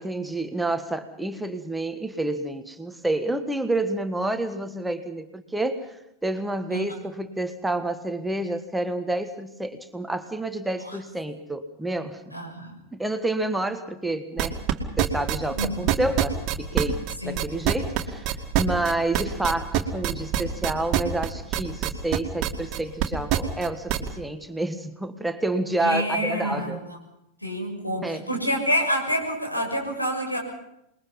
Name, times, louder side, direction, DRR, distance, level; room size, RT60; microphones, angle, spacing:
voice 1, 0.0-12.4 12.9-14.6 15.0-26.8 28.0-28.3, right 2 dB, 5° right, 8 dB, 1.5 m, -29 dB
voice 2, 12.3-12.7 15.6-16.0 17.2-17.4 25.8-26.8 27.4-30.4, equal, 85° left, 1 dB, 6.7 m, -27 dB
sound 1, 14.4-24.1, right 12 dB, 40° right, 2.3 m, -24 dB
27.5 x 21.5 x 5.6 m, 0.82 s
figure-of-eight pair, 90°, 0 cm